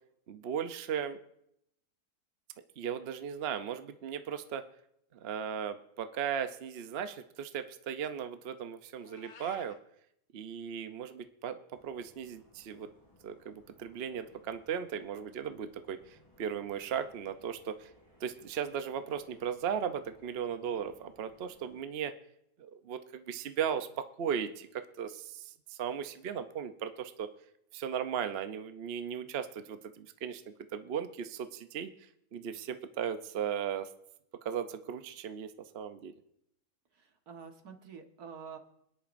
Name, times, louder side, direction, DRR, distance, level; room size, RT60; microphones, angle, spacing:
voice 1, 0.3-1.2 2.8-4.6 5.1-9.7 10.3-11.6 11.8-12.9 13.2-17.9 18.2-22.1 22.6-23.9 24.2-27.3 27.7-30.4 30.7-33.9 34.4-36.1, right 8 dB, 55° right, 9 dB, 0.7 m, -37 dB
Meow, 9.0-9.8, left 5 dB, 90° left, 1.5 m, -53 dB
sound 1, 11.7-21.8, equal, 20° left, 6.4 m, -64 dB
voice 2, 36.9-38.6, right 6 dB, 75° right, 4 dB, 1.9 m, -48 dB
28.5 x 10.0 x 2.6 m, 0.77 s
omnidirectional pair, 1.6 m